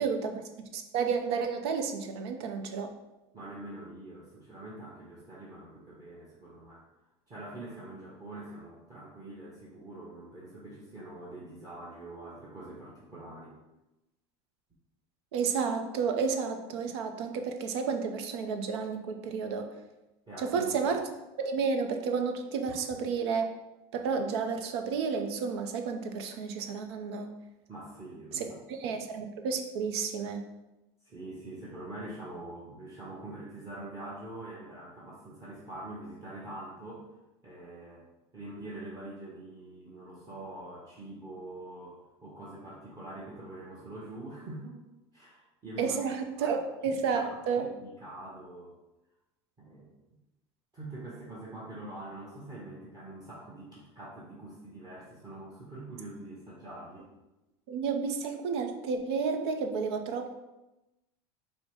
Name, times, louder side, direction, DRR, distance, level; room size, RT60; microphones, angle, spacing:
voice 1, 0.0-2.9 15.3-19.7 20.4-21.0 21.4-23.5 23.9-27.3 28.3-30.4 45.8-47.7 57.7-60.3, right 5 dB, 85° right, 5 dB, 0.6 m, -31 dB
voice 2, 3.3-6.8 7.3-13.6 20.3-20.7 27.7-28.5 28.8-29.0 31.0-37.1 37.4-38.0 38.3-44.8 45.1-45.9 46.4-46.6 46.8-48.7 49.6-49.9 50.7-57.1, right 2 dB, 30° right, -6 dB, 1.1 m, -44 dB
5.1 x 2.1 x 4.7 m, 1.0 s
supercardioid pair, 120°, 13 cm